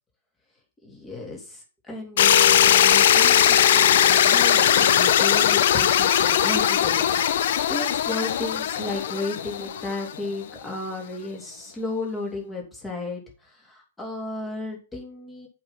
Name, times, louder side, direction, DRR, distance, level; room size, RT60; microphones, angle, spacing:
voice 1, 0.8-15.5, left 2 dB, 10° left, -1 dB, 3.1 m, -34 dB
sound 1, 2.2-10.2, left 10 dB, 55° left, 0.7 m, -19 dB
7.7 x 5.5 x 5.8 m, 0.36 s
figure-of-eight pair, 115°, 0 cm